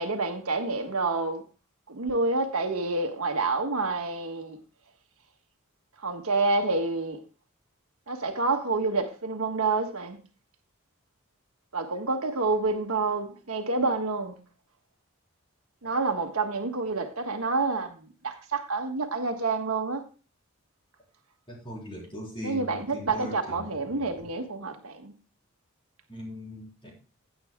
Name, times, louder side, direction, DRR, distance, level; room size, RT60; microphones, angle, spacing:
voice 1, 0.0-1.4 1.9-4.6 6.0-7.2 8.1-10.2 11.7-14.3 15.8-18.0 18.2-20.0 22.4-25.1, right 3 dB, 85° right, 1.5 m, -28 dB
voice 2, 21.5-24.3 26.1-26.9, equal, 25° left, 4.0 m, -40 dB
15.5 x 8.7 x 2.3 m
head